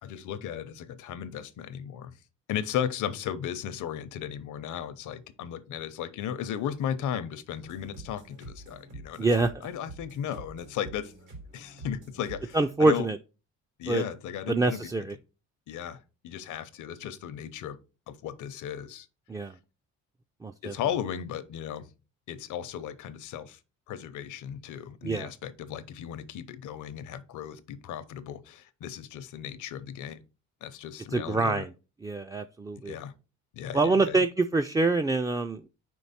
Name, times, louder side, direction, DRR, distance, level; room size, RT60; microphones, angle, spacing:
voice 1, 0.0-2.2 2.5-11.1 11.5-13.1 13.8-14.9 15.7-17.8 18.1-19.1 20.6-21.9 22.3-23.6 23.9-30.2 30.6-31.6 32.9-33.1 33.5-34.2, left 9 dB, 80° left, 0.7 m, -35 dB
sound 1, 7.6-12.7, right 2 dB, 90° right, 3.1 m, -47 dB
voice 2, 9.2-9.7 12.5-13.2 13.9-14.0 14.5-15.2 19.3-19.6 20.4-20.7 25.0-25.3 31.1-31.7 32.0-32.9 33.7-35.7, right 3 dB, 10° right, 0.3 m, -25 dB
4.9 x 4.6 x 4.1 m
cardioid pair, 90°, 30 cm